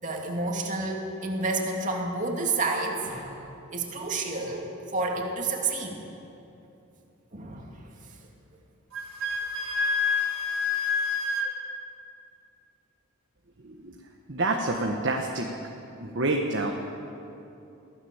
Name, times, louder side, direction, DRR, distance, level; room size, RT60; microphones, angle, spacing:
voice 1, 0.0-3.4 3.7-6.0 7.3-7.7, right 3 dB, 35° right, 0 dB, 2.8 m, -30 dB
Wind instrument woodwind instrument, 8.9-11.5, left 4 dB, 85° right, 2.1 m, -27 dB
voice 2, 13.6-13.9 14.3-15.5 16.0-16.7, right 2 dB, 55° right, 1 dB, 1.4 m, -27 dB
23.5 x 16.0 x 7.3 m, 2.9 s
head